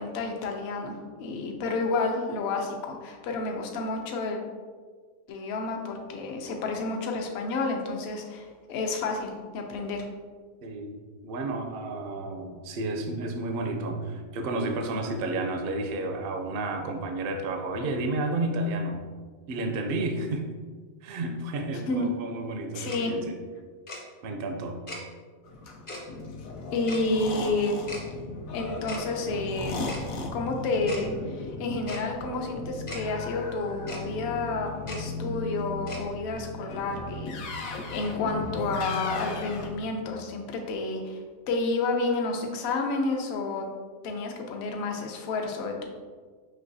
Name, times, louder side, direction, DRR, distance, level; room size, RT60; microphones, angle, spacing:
voice 1, 0.0-4.4 5.3-10.0 21.9-22.1 22.7-23.1 26.7-27.8 28.5-29.8 30.3-41.2 41.5-43.7 44.0-45.9, left 3 dB, 60° left, 2 dB, 0.8 m, -30 dB
voice 2, 10.6-10.9 11.2-19.0 19.5-20.4 21.0-23.4 24.2-24.8, right 2 dB, 65° right, 3 dB, 0.6 m, -31 dB
Tick-tock, 22.9-23.0 23.9-24.0 24.9-25.0 25.9-26.0 26.9-27.0 27.9-28.0 28.9-29.0 29.9-30.0 30.9-31.0 31.9-32.0 32.9-33.0 33.9-34.0 34.9-35.0 35.9-36.0, left 1 dB, 35° left, 0.5 m, -38 dB
sound 1, 25.4-39.8, left 2 dB, 85° left, 1.0 m, -37 dB
5.5 x 3.0 x 2.6 m, 1.5 s
omnidirectional pair, 1.4 m